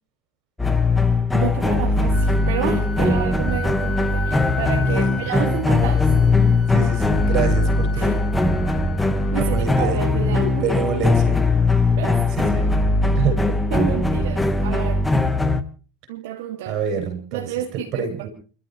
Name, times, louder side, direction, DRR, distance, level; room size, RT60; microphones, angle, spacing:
sound 1, 0.6-15.6, left 3 dB, 5° left, 1.1 m, -20 dB
voice 1, 1.3-6.1 7.9-8.1 9.3-10.7 12.0-12.2 13.7-15.0 16.1-16.8 17.3-18.3, right 11 dB, 75° right, 2.1 m, -30 dB
Wind instrument woodwind instrument, 2.1-9.9, left 5 dB, 30° left, 2.0 m, -36 dB
voice 2, 4.9-5.6 6.7-8.2 9.4-10.0 10.3-11.4 11.7-11.9 12.4-12.7 13.1-13.4 16.7-17.5 17.9-18.3, right 6 dB, 50° right, 6.6 m, -27 dB
29.5 x 13.0 x 3.1 m
supercardioid pair, 130°, 0 cm